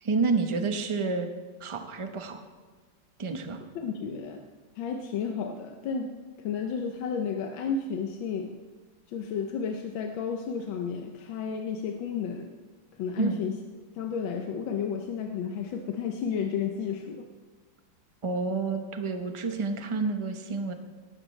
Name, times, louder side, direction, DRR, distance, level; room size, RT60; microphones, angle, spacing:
voice 1, 0.0-1.3 1.6-2.4 3.2-3.6 13.2-13.4 18.2-20.7, right 4 dB, 35° right, 6 dB, 0.5 m, -29 dB
voice 2, 3.7-4.4 4.8-6.1 6.4-8.5 9.1-12.5 13.0-13.5 14.0-17.2, left 6 dB, 80° left, 3 dB, 1.6 m, -32 dB
17.0 x 13.0 x 3.2 m, 1.4 s
omnidirectional pair, 2.1 m